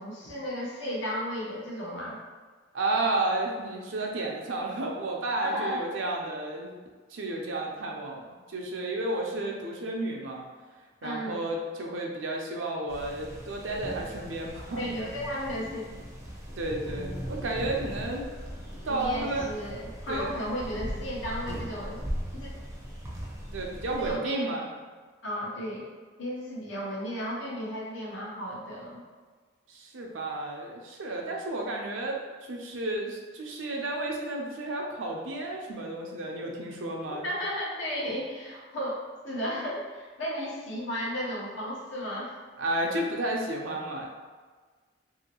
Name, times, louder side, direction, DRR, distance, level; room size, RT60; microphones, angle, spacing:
voice 1, 0.0-2.2 5.4-5.8 11.0-11.4 14.8-15.8 18.9-22.0 22.3-22.5 24.0-24.5 25.2-25.9 26.2-29.0 37.2-42.3, equal, 75° left, -5 dB, 0.9 m, -34 dB
voice 2, 2.7-6.7 7.1-10.4 11.0-14.9 16.6-18.3 18.8-19.5 20.1-20.3 23.5-24.6 29.7-32.2 32.5-37.3 42.6-44.1, right 2 dB, 85° right, 0 dB, 0.6 m, -32 dB
sound 1, 12.9-24.2, equal, 15° right, 0.5 m, -39 dB
2.9 x 2.7 x 2.9 m, 1.4 s
head